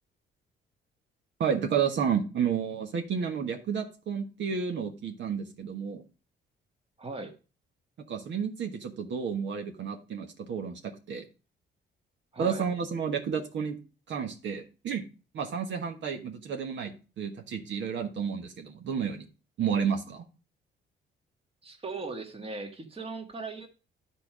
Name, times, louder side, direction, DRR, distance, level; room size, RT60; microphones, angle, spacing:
voice 1, 1.4-6.0 8.1-11.2 12.4-13.8 14.1-15.0 15.3-19.3 19.6-20.2, right 7 dB, 65° right, 4 dB, 1.4 m, -31 dB
voice 2, 7.0-7.3 12.3-12.6 21.6-23.7, right 3 dB, 30° right, 5 dB, 1.8 m, -38 dB
10.5 x 4.6 x 5.0 m, 0.33 s
cardioid pair, 90°, 20 cm